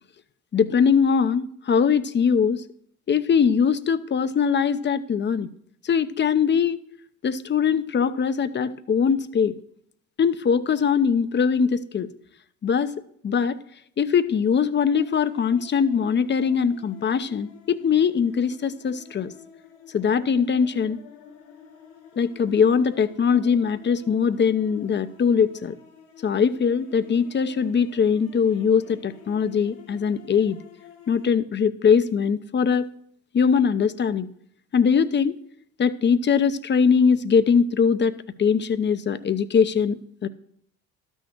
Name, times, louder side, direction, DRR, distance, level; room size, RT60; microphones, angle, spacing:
voice 1, 0.5-2.6 3.1-5.5 5.8-6.8 7.2-9.6 10.2-12.1 12.6-12.9 13.2-13.6 14.0-19.3 19.9-21.0 22.2-25.8 26.2-30.6 31.1-32.9 33.3-34.3 34.7-35.4 35.8-38.1 38.4-40.3, left 6 dB, 30° left, 13 dB, 0.8 m, -21 dB
sound 1, 14.9-31.3, left 8 dB, 85° left, 2.9 m, -49 dB
12.5 x 6.4 x 6.1 m, 0.66 s
supercardioid pair, 80°, 35 cm